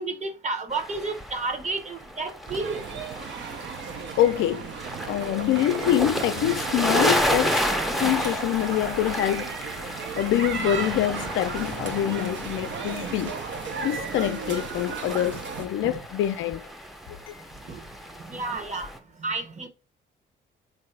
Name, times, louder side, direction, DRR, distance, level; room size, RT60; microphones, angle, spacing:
voice 1, 0.0-2.8 15.8-16.0 17.7-17.8 18.3-18.9 19.2-19.7, right 3 dB, 35° right, 1.0 m, -31 dB
sound 1, 0.7-19.0, equal, ahead, 0.5 m, -32 dB
sound 2, 2.5-15.7, right 6 dB, 65° right, 0.6 m, -35 dB
voice 2, 4.2-4.7 5.1-7.6 8.0-9.5 10.2-13.3 13.8-16.6 17.3-17.4, left 12 dB, 85° left, 0.4 m, -25 dB
4.0 x 2.6 x 3.2 m
cardioid pair, 80°, 20 cm